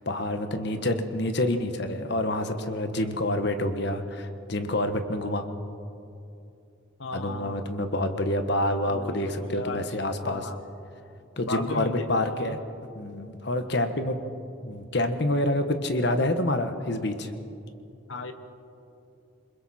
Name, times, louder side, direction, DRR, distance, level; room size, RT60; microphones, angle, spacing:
voice 1, 0.1-5.4 7.1-10.5 11.4-12.6 12.9-14.2 14.6-17.3, left 1 dB, 55° left, 8 dB, 1.3 m, -27 dB
voice 2, 7.0-7.7 8.9-9.9 10.2-10.6 11.5-12.6 18.1-18.3, left 2 dB, 70° left, 9 dB, 1.3 m, -35 dB
27.5 x 21.5 x 4.3 m, 2.6 s
head